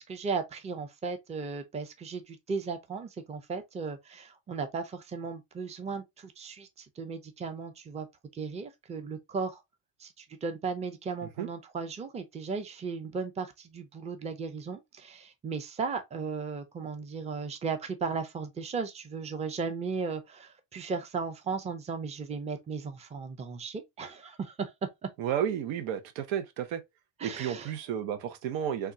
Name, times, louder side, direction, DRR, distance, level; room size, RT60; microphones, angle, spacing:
voice 1, 0.0-8.1 8.3-9.6 10.0-24.7 27.2-27.7, right 5 dB, 15° right, 0.4 m, -36 dB
voice 2, 25.2-26.8 27.2-28.9, right 9 dB, 90° right, 0.8 m, -32 dB
3.5 x 2.3 x 2.6 m
cardioid pair, 130°, 45 cm